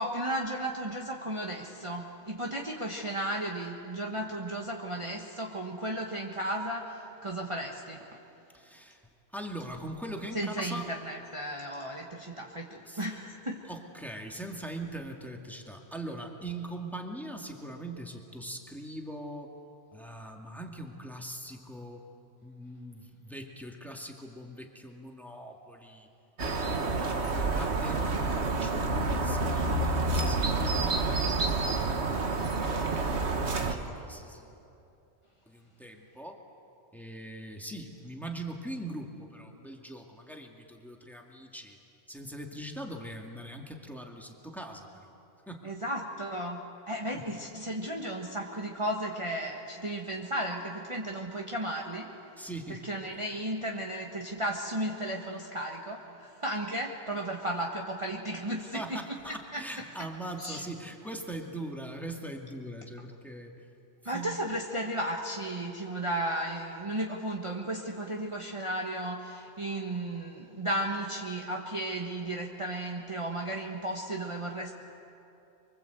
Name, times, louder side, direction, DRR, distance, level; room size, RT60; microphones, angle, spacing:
voice 1, 0.0-8.0 10.3-13.6 45.6-52.1 52.7-59.0 59.5-59.6 60.4-60.6 64.0-74.7, right 1 dB, 25° right, -1 dB, 1.4 m, -34 dB
voice 2, 8.5-9.0 9.3-10.9 12.8-13.0 13.7-19.5 19.9-22.0 22.4-26.1 26.7-31.2 33.4-34.5 35.5-36.4 36.9-41.8 42.1-45.1 45.5-45.7 47.1-47.2 47.8-48.0 52.4-53.2 58.6-63.7 64.1-64.4, right 1 dB, ahead, 1 dB, 2.2 m, -42 dB
sound 1, 26.4-33.7, right 3 dB, 70° right, 1.8 m, -28 dB
25.0 x 24.5 x 8.1 m, 2.7 s
omnidirectional pair, 1.2 m